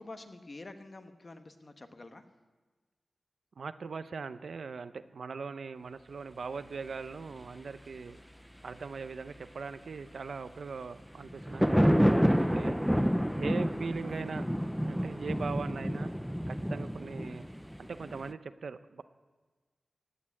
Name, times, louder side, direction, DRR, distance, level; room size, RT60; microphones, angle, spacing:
voice 1, 0.0-2.3 13.9-14.2, left 2 dB, 35° left, 7 dB, 1.0 m, -48 dB
voice 2, 3.6-8.2 8.6-12.8 13.4-14.5 14.8-16.1 16.5-17.5 17.8-19.0, right 5 dB, 70° right, 12 dB, 0.6 m, -40 dB
sound 1, 11.2-18.3, equal, ahead, 0.4 m, -28 dB
16.5 x 8.7 x 8.5 m, 1.3 s
wide cardioid pair, 135°, 0 cm